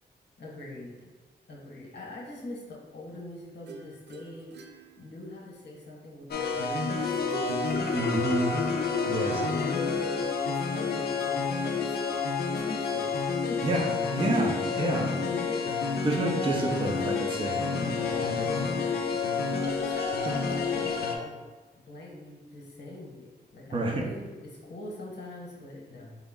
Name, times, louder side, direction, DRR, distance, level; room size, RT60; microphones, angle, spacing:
voice 1, 0.4-1.1 1.5-4.6 5.0-8.0 9.0-12.0 12.5-13.6 14.7-15.8 18.0-21.4 21.8-26.2, left 2 dB, 90° left, -3 dB, 1.1 m, -43 dB
sound 1, 3.7-5.6 7.1-8.6, right 3 dB, 80° right, 0.4 m, -44 dB
sound 2, 6.3-21.2, left 5 dB, 65° left, 0.5 m, -29 dB
voice 2, 7.9-8.5 9.1-9.3 13.6-15.1 16.0-17.6 23.7-24.0, right 2 dB, 30° right, 0 dB, 0.5 m, -28 dB
5.0 x 2.3 x 3.6 m, 1.2 s
wide cardioid pair, 135°, 18 cm